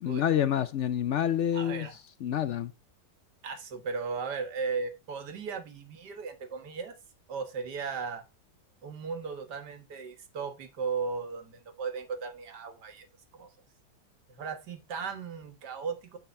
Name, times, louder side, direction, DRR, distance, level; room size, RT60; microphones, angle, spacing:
voice 1, 0.0-1.9 2.2-2.7, left 10 dB, 75° left, 0.6 m, -28 dB
voice 2, 1.5-2.0 3.4-6.9 7.3-8.2 8.8-13.1 13.3-13.5 14.3-16.2, right 5 dB, 70° right, 2.1 m, -36 dB
9.7 x 5.5 x 4.3 m
omnidirectional pair, 1.8 m